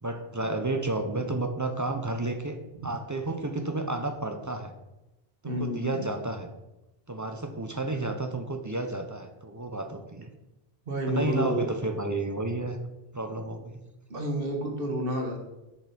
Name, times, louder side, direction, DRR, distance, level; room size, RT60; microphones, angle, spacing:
voice 1, 0.0-4.7 5.4-6.5 7.1-10.3 11.1-12.8 13.1-13.8, right 2 dB, 25° right, 6 dB, 0.4 m, -31 dB
voice 2, 5.4-6.1 10.9-11.7 14.1-15.4, equal, 60° right, 2 dB, 1.5 m, -30 dB
6.6 x 5.2 x 5.0 m, 0.97 s
omnidirectional pair, 1.1 m